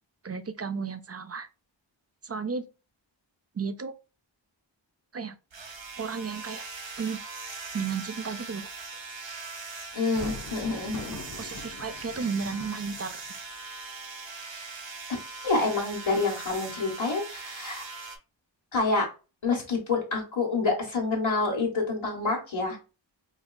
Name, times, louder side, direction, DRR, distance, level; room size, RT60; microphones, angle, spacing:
voice 1, 0.2-1.5 2.2-2.6 3.5-3.9 5.1-5.4 6.0-6.7 7.0-7.2 7.7-8.7 11.4-13.2, right 5 dB, 35° right, 0.5 m, -33 dB
sound 1, 5.5-18.2, right 4 dB, 65° right, 0.9 m, -41 dB
voice 2, 9.9-11.1 11.4-11.6 15.4-17.9 18.7-19.1 19.4-22.8, left 3 dB, 75° left, 1.3 m, -27 dB
Thunder, 10.0-13.4, left 3 dB, 45° left, 0.9 m, -42 dB
5.2 x 2.3 x 2.3 m
wide cardioid pair, 45°, 47 cm